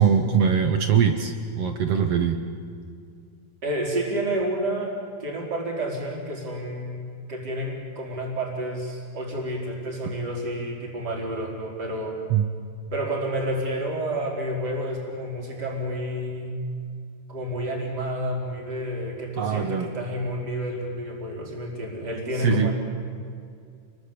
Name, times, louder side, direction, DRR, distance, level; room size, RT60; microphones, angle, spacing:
voice 1, 0.0-2.4 12.3-12.5 19.4-19.9 22.4-22.7, right 7 dB, 65° right, 7 dB, 1.6 m, -22 dB
voice 2, 3.6-12.2 12.9-16.6 17.3-22.7, right 1 dB, 25° right, 0 dB, 5.0 m, -30 dB
29.0 x 22.0 x 8.7 m, 2.3 s
omnidirectional pair, 4.3 m